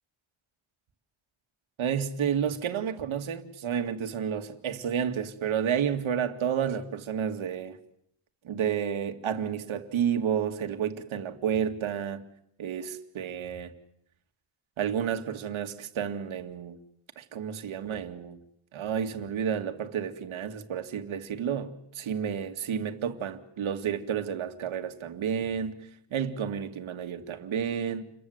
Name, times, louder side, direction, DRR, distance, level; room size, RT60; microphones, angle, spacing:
voice 1, 1.8-7.8 8.4-12.2 12.6-13.7 14.8-16.8 17.2-18.4 18.7-25.8 26.1-28.0, right 8 dB, 70° right, 2.2 m, -31 dB
29.0 x 22.5 x 8.0 m
wide cardioid pair, 150°, 49 cm